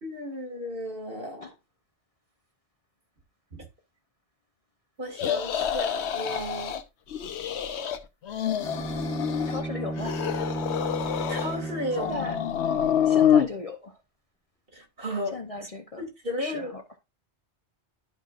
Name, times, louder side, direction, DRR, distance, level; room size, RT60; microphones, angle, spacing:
voice 1, 0.0-1.5 3.5-3.6 5.0-6.8 11.3-12.1 14.7-15.4 16.2-16.7, equal, 55° right, 2.4 m, -34 dB
sound 1, 5.1-6.8 7.1-8.0 8.2-9.6 10.0-11.6 11.9-13.5, left 9 dB, 75° left, 1.0 m, -27 dB
Bowed string instrument, 8.6-12.7, right 2 dB, 5° left, 0.8 m, -34 dB
voice 2, 9.5-10.1 12.0-12.4 13.0-14.0 15.3-16.0 16.4-16.8, left 2 dB, 35° left, 0.7 m, -36 dB
11.5 x 5.4 x 2.5 m
omnidirectional pair, 1.2 m